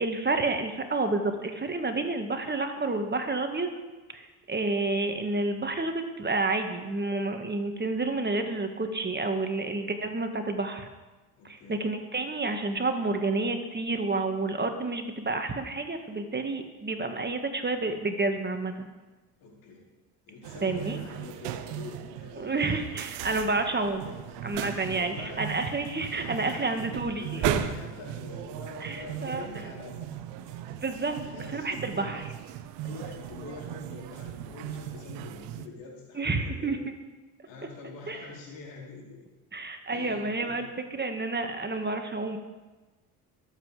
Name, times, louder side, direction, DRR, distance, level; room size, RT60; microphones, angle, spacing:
voice 1, 0.0-3.7 4.1-10.9 11.4-18.9 20.6-21.0 22.4-24.1 24.4-27.5 28.8-29.5 30.7-31.2 31.5-32.2 36.1-36.8 38.1-38.2 39.5-40.7 40.9-42.4, right 3 dB, 25° right, 5 dB, 2.0 m, -29 dB
voice 2, 11.4-11.8 19.4-19.8 20.3-23.0 24.0-25.4 25.7-26.8 27.2-30.6 31.1-32.2 32.8-36.8 37.4-39.3 39.9-40.6 41.7-41.8, left 4 dB, 75° left, -2 dB, 4.7 m, -45 dB
sound 1, 20.4-35.7, right 11 dB, 70° right, 1.1 m, -37 dB
22.5 x 8.1 x 5.1 m, 1.2 s
hypercardioid pair, 65°, 44 cm